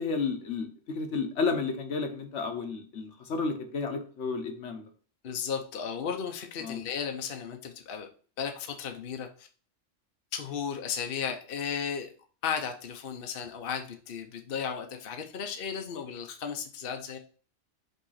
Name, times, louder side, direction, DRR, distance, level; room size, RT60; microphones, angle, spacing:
voice 1, 0.0-4.8 6.6-6.8, left 4 dB, 70° left, 5 dB, 1.3 m, -32 dB
voice 2, 5.2-8.1 8.4-9.5 10.3-12.1 12.4-17.2, left 7 dB, 55° left, 4 dB, 0.9 m, -35 dB
5.4 x 3.7 x 5.6 m, 0.42 s
omnidirectional pair, 1.3 m